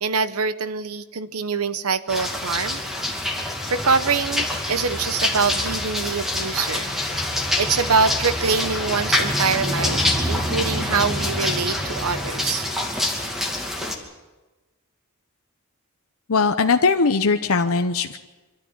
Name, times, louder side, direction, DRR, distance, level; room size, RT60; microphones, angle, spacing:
voice 1, 0.0-2.8 3.7-6.9 7.6-12.6, right 5 dB, 90° right, 13 dB, 1.0 m, -24 dB
sound 1, 2.1-14.0, left 1 dB, ahead, 2.5 m, -25 dB
voice 2, 16.3-18.2, left 4 dB, 70° left, 6 dB, 0.8 m, -20 dB
25.0 x 13.5 x 9.7 m, 1.2 s
head